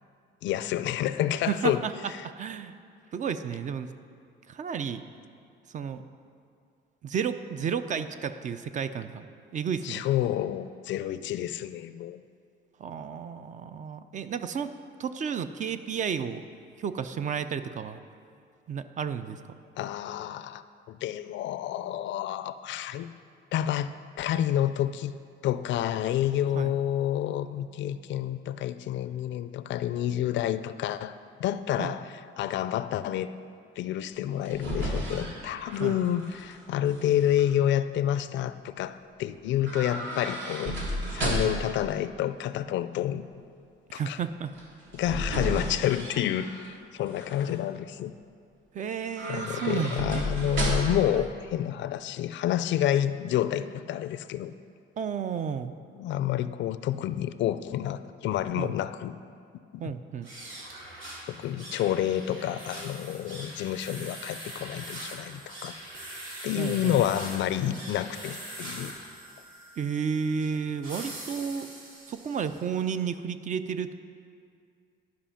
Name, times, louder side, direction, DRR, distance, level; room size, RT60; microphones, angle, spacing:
voice 1, 0.4-1.8 9.8-12.2 19.8-20.6 20.9-23.1 23.5-23.9 24.2-25.1 25.4-33.3 33.8-43.3 43.9-44.2 44.9-48.1 49.3-54.5 55.9-59.1 59.7-59.9 61.3-65.8 66.4-68.9, left 11 dB, 65° left, 13 dB, 0.4 m, -29 dB
voice 2, 1.5-1.9 2.2-2.7 3.1-3.9 4.5-5.0 5.7-6.0 7.0-9.3 9.5-10.0 12.8-14.7 15.0-16.4 16.8-18.0 18.7-19.6 26.5-26.7 31.8-31.9 35.8-36.0 41.2-41.6 43.9-44.5 45.4-45.6 48.7-50.3 51.1-51.2 55.0-55.7 58.5-58.7 59.8-60.3 66.6-66.9 69.8-71.7 72.1-73.9, right 7 dB, 40° right, 11 dB, 0.4 m, -32 dB
sound 1, 34.2-36.5 36.9-37.4 39.6-41.7 44.5-46.7 47.1-47.6 49.0-51.1 51.4-51.5, right 1 dB, 65° right, 2.4 m, -33 dB
sound 2, 60.2-72.7, right 1 dB, 80° right, 2.2 m, -42 dB
11.5 x 5.2 x 5.6 m, 2.3 s
cardioid pair, 120°, 21 cm